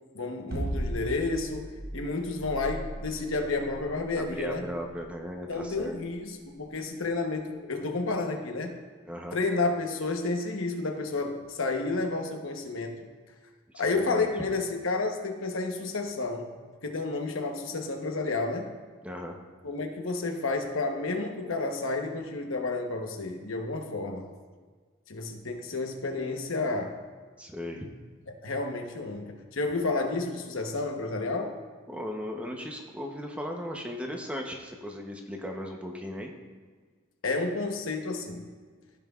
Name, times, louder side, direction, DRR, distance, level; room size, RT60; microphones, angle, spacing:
voice 1, 0.1-4.7 5.5-8.8 9.3-13.1 13.8-16.5 16.8-18.7 19.6-24.3 25.1-27.0 28.3-31.6 37.2-38.5, left 3 dB, 75° left, 4 dB, 1.0 m, -31 dB
sound 1, 0.5-6.7, right 1 dB, 50° right, 0.9 m, -37 dB
voice 2, 4.1-6.0 9.0-9.4 13.7-14.3 19.0-19.4 27.4-27.9 31.9-36.3, equal, 5° right, 1 dB, 0.8 m, -37 dB
15.0 x 5.7 x 2.4 m, 1.5 s
head